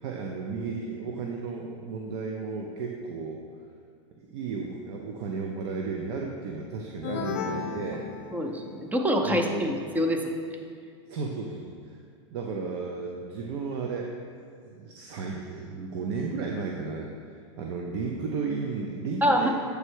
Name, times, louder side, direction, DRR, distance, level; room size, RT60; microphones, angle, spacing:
voice 1, 0.0-3.4 4.3-8.0 9.2-9.7 11.1-12.0 12.3-14.1 14.6-17.1 17.6-19.5, right 4 dB, 60° right, 1 dB, 0.6 m, -33 dB
sound 1, 7.0-8.9, left 5 dB, 50° left, 0.6 m, -34 dB
voice 2, 8.3-10.2 19.2-19.5, equal, 10° right, 3 dB, 0.6 m, -25 dB
8.0 x 3.4 x 4.6 m, 2.2 s
hypercardioid pair, 115°, 16 cm